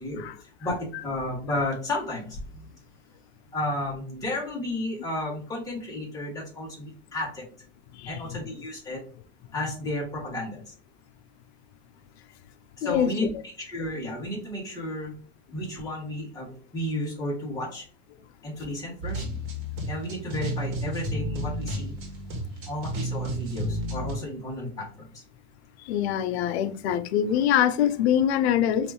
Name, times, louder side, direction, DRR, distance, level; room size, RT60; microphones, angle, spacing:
voice 1, 0.0-2.7 3.5-7.5 8.0-9.0 9.5-10.7 12.8-13.3 13.6-15.1 15.5-17.9 18.4-19.3 19.9-21.9 22.7-24.9 25.1-25.2, left 1 dB, 10° left, 2.0 m, -32 dB
voice 2, 12.8-13.3 25.8-28.9, left 10 dB, 75° left, 0.6 m, -24 dB
sound 1, 19.0-24.1, equal, 60° right, 1.8 m, -32 dB
5.0 x 3.1 x 3.1 m
supercardioid pair, 155°, 33 cm